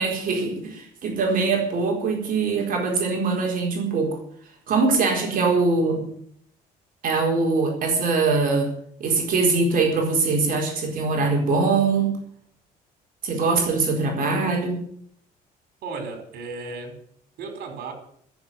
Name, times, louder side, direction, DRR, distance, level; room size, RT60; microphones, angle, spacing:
voice 1, 0.0-4.2 4.7-6.1 7.0-8.7 9.0-12.1 13.2-14.8, right 4 dB, 55° right, 1 dB, 4.5 m, -22 dB
voice 2, 15.8-17.0 17.4-17.9, right 4 dB, 70° right, 6 dB, 5.1 m, -34 dB
14.0 x 7.6 x 9.9 m, 0.66 s
cardioid pair, 110°, 17 cm